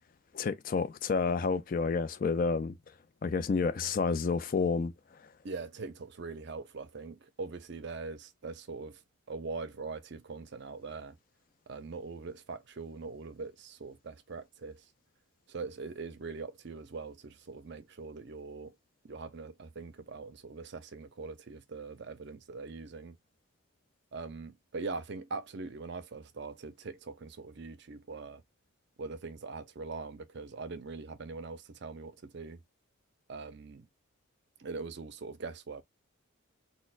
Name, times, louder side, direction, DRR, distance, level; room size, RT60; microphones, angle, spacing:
voice 1, 0.3-2.7 3.2-4.9, left 4 dB, 40° left, 0.3 m, -29 dB
voice 2, 5.4-9.0 9.3-11.2 11.7-14.9 15.5-18.8 19.0-23.2 24.1-28.4 29.0-32.6 33.3-33.9 34.6-35.8, right 4 dB, 55° right, 0.5 m, -42 dB
4.2 x 2.1 x 2.4 m
head